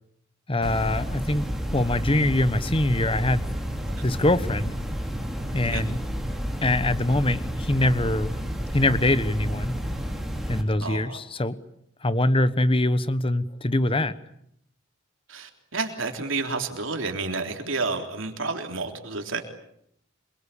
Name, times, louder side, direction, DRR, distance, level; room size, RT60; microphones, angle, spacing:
voice 1, 0.5-3.4 4.0-4.7 5.5-6.0 6.6-8.3 8.7-9.8 10.5-11.6 12.0-14.1, left 1 dB, 25° left, 14 dB, 1.1 m, -23 dB
sound 1, 0.6-10.6, equal, ahead, 3.6 m, -30 dB
voice 2, 10.8-11.2 15.3-19.4, right 3 dB, 70° right, 4 dB, 3.6 m, -30 dB
26.5 x 23.0 x 8.6 m, 0.73 s
head